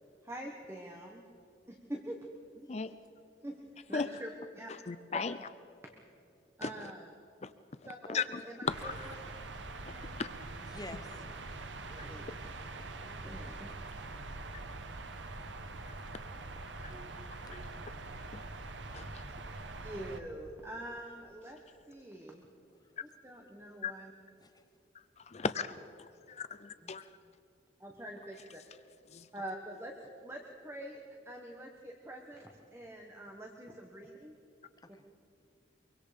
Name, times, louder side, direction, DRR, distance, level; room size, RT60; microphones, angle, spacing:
voice 1, 0.2-1.2 1.7-2.2 3.4-4.7 5.1-5.2 5.8-5.9 6.6-7.1 7.8-9.2 9.9-10.2 11.9-12.4 13.0-13.7 16.9-17.1 17.5-17.6 19.8-21.6 21.9-22.5 23.0-24.1 26.8-26.9 27.8-28.6 29.3-34.3, right 1 dB, 15° right, 1 dB, 1.4 m, -45 dB
voice 2, 4.7-5.4 6.6-6.7 7.4-7.5 8.1-9.1 9.9-10.3 16.8-16.9 17.5-17.6 18.3-18.4 18.9-19.2 23.8-23.9 25.2-27.1 29.1-29.3, left 5 dB, 35° left, 12 dB, 0.5 m, -37 dB
sound 1, 8.7-20.2, right 2 dB, 90° right, 1.3 m, -44 dB
voice 3, 10.6-11.4 14.9-15.2 17.4-17.5 22.8-23.0 24.4-24.7 34.8-35.0, left 2 dB, 20° left, 7 dB, 1.0 m, -50 dB
24.0 x 23.5 x 5.2 m, 2.8 s
head